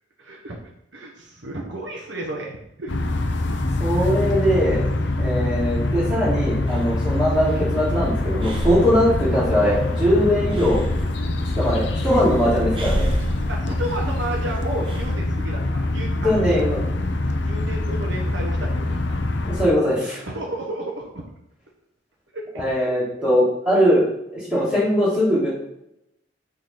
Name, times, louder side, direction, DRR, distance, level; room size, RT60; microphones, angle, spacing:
voice 1, 0.2-3.0 13.5-16.6 17.4-19.2 20.2-21.3 22.3-22.9, right 1 dB, 75° right, -1 dB, 1.2 m, -33 dB
sound 1, 2.9-19.7, left 2 dB, 75° left, 0.7 m, -24 dB
voice 2, 3.8-4.8 5.2-10.8 11.4-13.1 16.2-16.8 19.5-20.2 22.5-25.5, equal, 5° right, -8 dB, 3.1 m, -21 dB
Breathing, 6.7-15.1, equal, 25° right, 0.9 m, -31 dB
6.6 x 4.1 x 5.7 m, 0.81 s
head